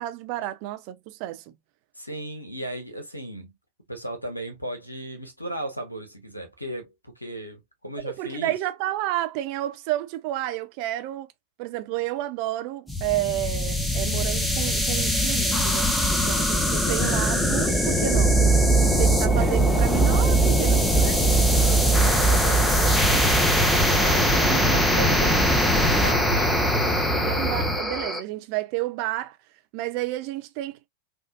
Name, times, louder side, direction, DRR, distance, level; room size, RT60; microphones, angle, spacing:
voice 1, 0.0-1.4 8.0-11.3 11.6-18.4 19.0-21.2 27.1-29.4 29.7-30.9, right 15 dB, 45° right, 0.4 m, -31 dB
voice 2, 1.9-3.5 3.9-8.5 16.9-17.3 22.0-23.1 23.7-26.6, right 1 dB, 85° left, 1.0 m, -36 dB
sound 1, 12.9-28.2, left 1 dB, 5° left, 0.7 m, -23 dB
sound 2, 16.8-27.8, right 4 dB, 25° right, 0.9 m, -24 dB
3.6 x 2.5 x 2.3 m
figure-of-eight pair, 90°, 0 cm